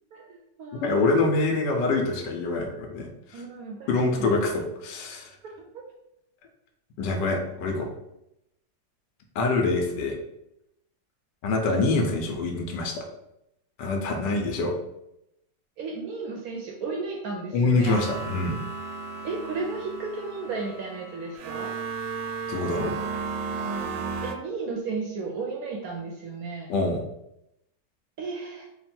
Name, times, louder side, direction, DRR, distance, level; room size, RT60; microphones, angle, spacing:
voice 1, 0.1-1.3 3.3-4.3 5.7-5.9 14.2-14.4 15.8-18.0 19.2-21.7 24.2-26.7 28.2-28.7, right 4 dB, 70° right, 0 dB, 0.9 m, -34 dB
voice 2, 0.8-3.4 3.9-5.3 7.0-7.9 9.3-10.2 11.4-13.0 13.8-14.7 17.5-18.6 22.5-23.0 26.7-27.0, left 3 dB, 80° left, 2 dB, 1.3 m, -25 dB
sound 1, 17.9-24.4, right 4 dB, 85° right, 1.3 m, -34 dB
3.6 x 2.3 x 4.2 m, 0.83 s
omnidirectional pair, 1.9 m